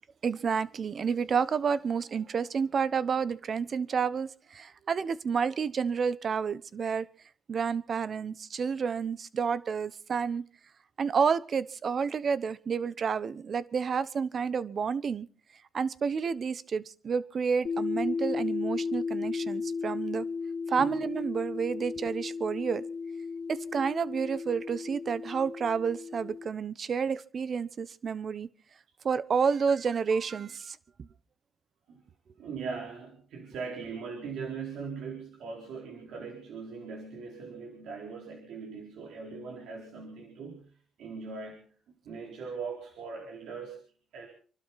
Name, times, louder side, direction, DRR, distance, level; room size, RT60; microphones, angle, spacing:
voice 1, 0.2-7.1 7.5-10.4 11.0-15.3 15.7-20.3 20.7-22.8 23.5-28.5 29.0-31.1, right 6 dB, 45° right, 1.0 m, -30 dB
sound 1, 17.6-26.5, left 5 dB, 50° left, 1.6 m, -35 dB
voice 2, 32.4-40.6 41.0-41.7 42.0-43.8 44.1-44.3, right 5 dB, 80° right, 4.3 m, -40 dB
27.5 x 12.0 x 4.2 m
cardioid pair, 90°, 0 cm